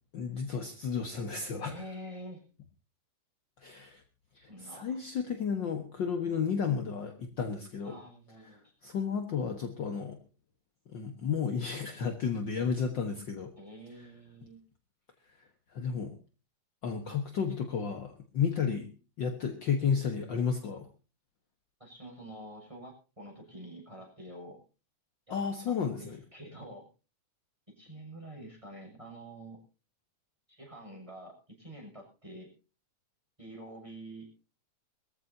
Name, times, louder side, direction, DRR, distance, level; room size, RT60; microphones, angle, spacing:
voice 1, 0.1-1.7 3.6-4.0 4.3-8.0 8.8-10.2 10.9-13.5 15.7-16.2 16.8-18.9 19.2-20.9 25.3-26.2, left 6 dB, 55° left, 4 dB, 1.3 m, -32 dB
voice 2, 1.7-2.4 4.5-5.0 7.8-8.7 13.6-14.6 21.8-24.6 25.3-25.4 25.7-26.9 27.7-29.6 30.5-32.5 33.4-34.3, right 1 dB, 10° right, 0 dB, 6.6 m, -47 dB
22.5 x 14.5 x 2.8 m, 0.33 s
omnidirectional pair, 4.1 m